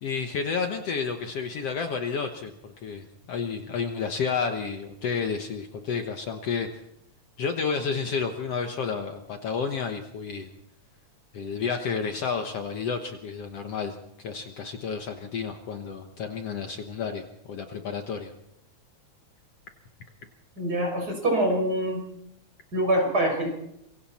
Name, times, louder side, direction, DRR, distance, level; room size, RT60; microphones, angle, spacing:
voice 1, 0.0-6.7 7.4-10.5 11.3-14.0 14.2-18.3, left 5 dB, 60° left, 5 dB, 2.0 m, -31 dB
voice 2, 20.6-22.0 22.7-23.5, right 1 dB, 30° right, 2 dB, 6.1 m, -24 dB
26.5 x 23.5 x 4.3 m, 0.79 s
omnidirectional pair, 3.5 m